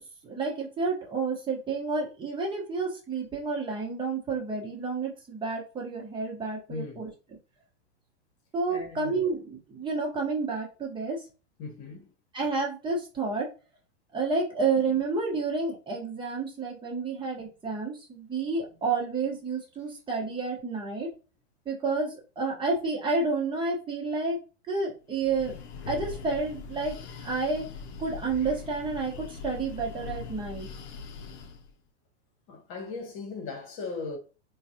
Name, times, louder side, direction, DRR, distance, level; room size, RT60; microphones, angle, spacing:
voice 1, 0.2-7.1 8.5-11.2 12.3-13.5 14.1-21.1 21.6-24.4 24.6-25.5 25.9-26.9 27.2-27.6 28.0-30.7, right 4 dB, 15° right, 1.1 m, -30 dB
voice 2, 6.7-7.0 8.7-9.1 11.6-12.1 32.5-34.2, left 4 dB, 40° left, 1.2 m, -38 dB
Breathing, 25.1-31.7, left 5 dB, 65° left, 0.7 m, -41 dB
3.9 x 2.4 x 2.8 m
hypercardioid pair, 135°, 35 cm